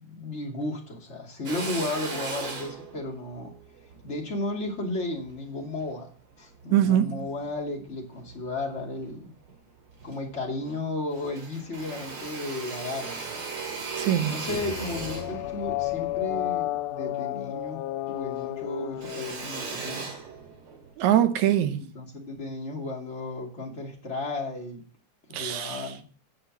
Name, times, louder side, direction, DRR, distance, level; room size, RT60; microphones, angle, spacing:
voice 1, 0.0-3.5 4.0-6.1 6.4-9.3 10.0-13.4 14.3-20.1 21.8-24.8 25.3-26.0, left 2 dB, 25° left, 2.5 m, -34 dB
Drill, 1.5-6.0 6.6-7.7 8.2-9.1 9.5-9.6 9.8-10.8 11.1-17.8 18.1-20.9, right 4 dB, 50° right, 2.6 m, -38 dB
voice 2, 6.7-7.2 14.0-14.4 21.0-21.8 25.3-25.9, right 11 dB, 75° right, 2.2 m, -23 dB
sound 1, 14.5-20.0, left 16 dB, 90° left, 2.1 m, -32 dB
9.6 x 6.5 x 7.3 m
omnidirectional pair, 3.4 m